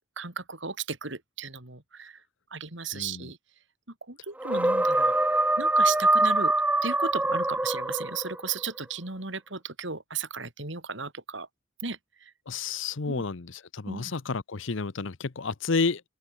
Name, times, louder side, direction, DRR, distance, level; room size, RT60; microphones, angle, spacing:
voice 1, 0.2-2.2 2.5-3.4 4.1-6.5 6.8-11.5 11.8-12.3 13.1-13.2 13.9-14.1, right 5 dB, 65° right, 3.5 m, -35 dB
voice 2, 2.9-3.3 12.5-16.0, left 4 dB, 70° left, 0.8 m, -30 dB
sound 1, 4.4-8.5, right 2 dB, 5° right, 0.6 m, -24 dB
open air
head